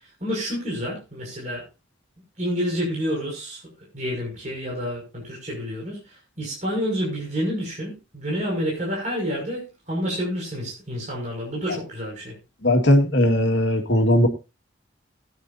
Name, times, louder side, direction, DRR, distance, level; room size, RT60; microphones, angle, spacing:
voice 1, 0.2-1.6 2.4-3.6 3.9-6.0 6.4-12.3, equal, 40° right, -4 dB, 6.0 m, -28 dB
voice 2, 12.6-14.3, left 1 dB, 75° left, 5 dB, 2.0 m, -18 dB
19.0 x 9.8 x 2.7 m, 0.28 s
head